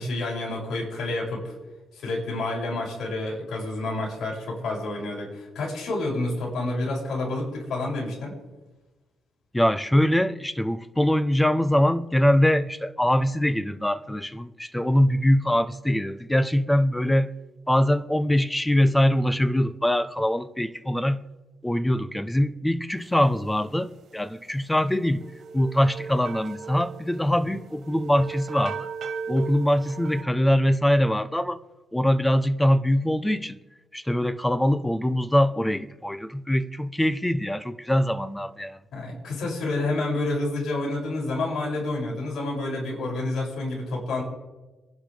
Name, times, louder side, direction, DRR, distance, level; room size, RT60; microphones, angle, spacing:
voice 1, 0.0-1.5 1.9-8.4 38.9-44.2, left 2 dB, 70° left, 7.1 m, -29 dB
voice 2, 9.5-17.3 17.7-21.2 21.6-25.2 25.5-28.9 29.3-31.6 31.9-33.6 33.9-38.8, equal, 10° left, 0.9 m, -23 dB
sound 1, 25.2-30.2, right 6 dB, 65° right, 2.5 m, -37 dB
29.0 x 11.5 x 3.5 m
cardioid pair, 90°, 0 cm